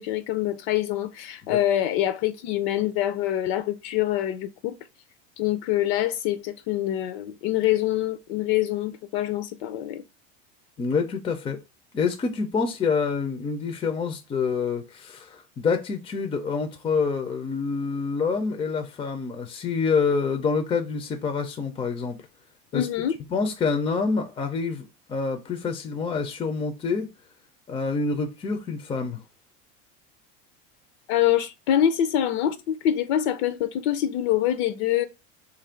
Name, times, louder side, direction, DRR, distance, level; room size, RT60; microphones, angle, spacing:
voice 1, 0.0-4.8 5.4-10.0 22.7-23.1 31.1-35.1, left 12 dB, 70° left, 0.5 m, -25 dB
voice 2, 10.8-11.6 11.9-22.2 22.7-22.9 23.3-27.1 27.7-29.2, left 5 dB, 15° left, 0.4 m, -27 dB
3.1 x 2.5 x 4.2 m
supercardioid pair, 135°, 33 cm